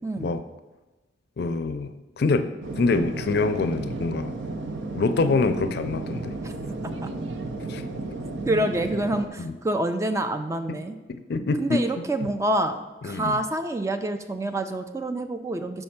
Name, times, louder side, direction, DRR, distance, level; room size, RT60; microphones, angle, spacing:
voice 1, 0.0-0.3 6.4-6.5 8.5-10.9 11.6-15.8, right 1 dB, 15° right, 8 dB, 0.3 m, -27 dB
voice 2, 1.4-4.4 4.9-6.4 7.7-7.8 9.4-9.5 10.7-10.8 11.1-12.3 13.0-13.4, left 3 dB, 60° left, 10 dB, 0.4 m, -26 dB
sound 1, 2.6-9.3, right 2 dB, 90° right, 0.6 m, -33 dB
5.4 x 4.3 x 5.8 m, 1.1 s
head